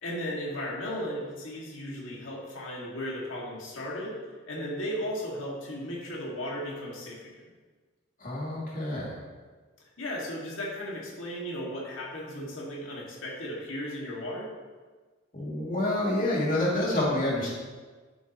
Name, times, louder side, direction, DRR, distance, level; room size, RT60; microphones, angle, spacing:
voice 1, 0.0-4.2 4.5-7.4 9.8-14.5, equal, 75° left, -4 dB, 2.2 m, -35 dB
voice 2, 8.2-9.2 15.3-17.5, left 1 dB, 45° left, -5 dB, 2.7 m, -28 dB
11.5 x 8.0 x 3.1 m, 1.4 s
head